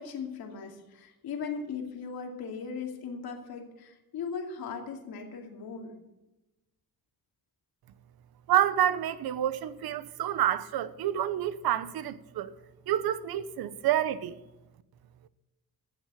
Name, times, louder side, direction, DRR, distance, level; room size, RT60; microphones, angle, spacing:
voice 1, 0.0-5.9, left 5 dB, 85° left, 2.5 m, -38 dB
voice 2, 8.5-12.5 12.9-14.4, right 11 dB, 80° right, 0.8 m, -28 dB
14.0 x 7.6 x 7.4 m
cardioid pair, 95°, 36 cm